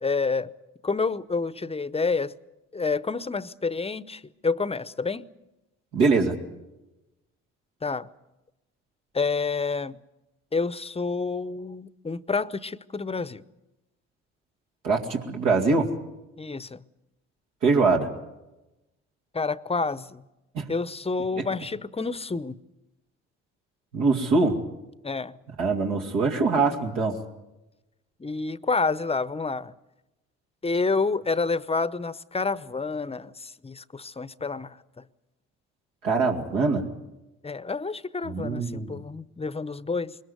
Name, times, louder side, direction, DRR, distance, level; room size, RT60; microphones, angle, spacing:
voice 1, 0.0-0.5 0.8-2.3 2.7-5.3 7.8-8.1 9.1-10.0 10.5-13.4 16.4-16.8 19.3-20.2 20.7-22.6 25.0-25.4 28.2-29.7 30.6-34.8 37.4-40.2, left 4 dB, 20° left, 0.8 m, -28 dB
voice 2, 5.9-6.3 14.8-15.9 17.6-18.1 20.5-20.7 21.4-21.5 23.9-24.6 25.6-27.2 36.0-36.9 38.2-39.0, right 4 dB, 80° right, 2.5 m, -23 dB
21.5 x 19.5 x 8.0 m
hypercardioid pair, 60°, 33 cm